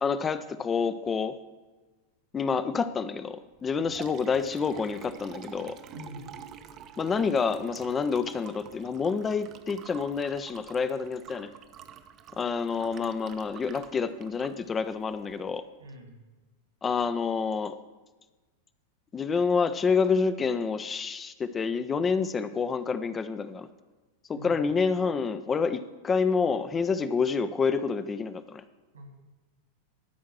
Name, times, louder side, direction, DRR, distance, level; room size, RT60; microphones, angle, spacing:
voice 1, 0.0-1.4 2.3-5.8 7.0-11.5 12.4-15.6 16.8-17.8 19.1-23.7 24.3-28.6, left 5 dB, 20° left, 12 dB, 0.4 m, -28 dB
Liquid, 3.6-15.5, right 8 dB, 35° right, 0.6 m, -47 dB
voice 2, 5.9-6.3 15.8-16.2 24.4-24.7 28.9-29.1, equal, 75° right, 3 dB, 2.1 m, -44 dB
12.5 x 4.6 x 6.1 m, 1.2 s
figure-of-eight pair, 90°, 0 cm